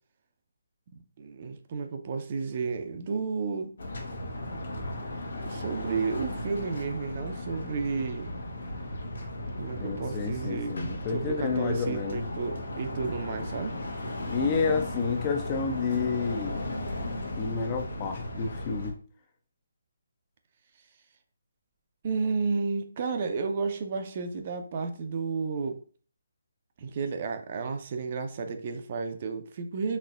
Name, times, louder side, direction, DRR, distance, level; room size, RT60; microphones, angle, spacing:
voice 1, 1.2-3.7 5.5-8.3 9.6-10.8 11.1-13.8 22.0-25.8 26.8-30.0, right 4 dB, 40° right, 7 dB, 0.4 m, -32 dB
sound 1, 3.8-18.9, left 1 dB, 70° left, 0.9 m, -36 dB
voice 2, 9.8-12.2 14.3-16.6 17.3-18.9, left 5 dB, 25° left, 5 dB, 0.4 m, -30 dB
4.2 x 3.0 x 2.4 m, 0.42 s
hypercardioid pair, 160°, 0 cm